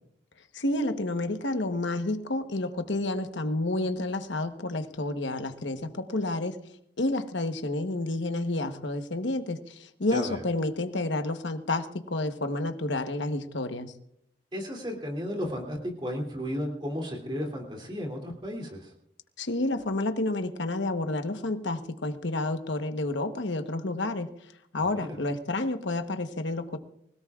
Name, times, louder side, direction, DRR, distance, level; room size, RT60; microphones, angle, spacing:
voice 1, 0.5-6.6 7.0-13.9 19.4-24.3 24.7-26.8, left 2 dB, 60° left, 8 dB, 1.1 m, -30 dB
voice 2, 10.1-10.4 14.5-18.9 24.8-25.2, equal, 25° right, 0 dB, 2.7 m, -34 dB
25.0 x 17.5 x 2.4 m, 0.74 s
head